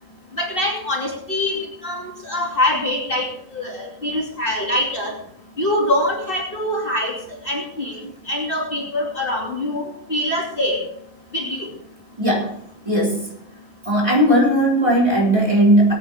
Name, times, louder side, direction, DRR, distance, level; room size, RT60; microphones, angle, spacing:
voice 1, 0.4-3.3 3.5-5.1 5.6-7.1 7.4-8.0 8.3-10.8 11.3-11.7, left 1 dB, 40° left, -1 dB, 2.8 m, -24 dB
voice 2, 12.2-12.5 12.9-13.3 13.9-15.9, right 1 dB, 20° right, -3 dB, 4.3 m, -17 dB
21.0 x 9.5 x 3.5 m, 0.70 s
omnidirectional pair, 1.5 m